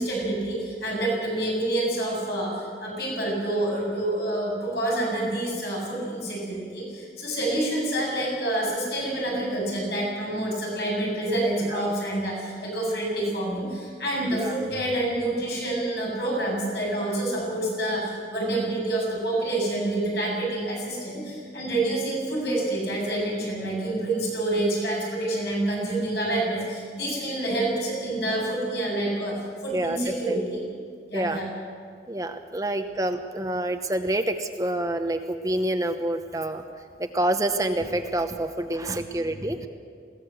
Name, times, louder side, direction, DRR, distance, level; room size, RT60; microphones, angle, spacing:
voice 1, 0.0-29.3 29.6-30.6 31.1-31.5, right 1 dB, 70° left, -2 dB, 7.9 m, -27 dB
voice 2, 29.7-30.4 31.1-31.4 32.1-36.6 37.0-39.7, right 1 dB, 20° right, 7 dB, 0.8 m, -27 dB
21.0 x 17.0 x 7.9 m, 2.1 s
head